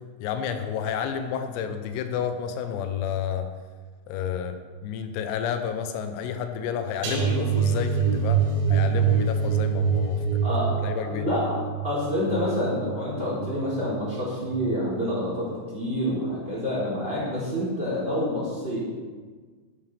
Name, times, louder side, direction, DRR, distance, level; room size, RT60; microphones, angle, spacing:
voice 1, 0.2-3.5 4.1-8.4 8.7-10.6 10.8-11.3, left 8 dB, 85° left, 7 dB, 3.6 m, -30 dB
sound 1, 7.0-14.1 14.5-14.8 15.1-15.2, right 7 dB, 60° right, 5.0 m, -25 dB
voice 2, 10.4-11.6 11.8-18.8, equal, 10° right, -6 dB, 3.6 m, -28 dB
13.0 x 7.7 x 6.7 m, 1.4 s
omnidirectional pair, 5.9 m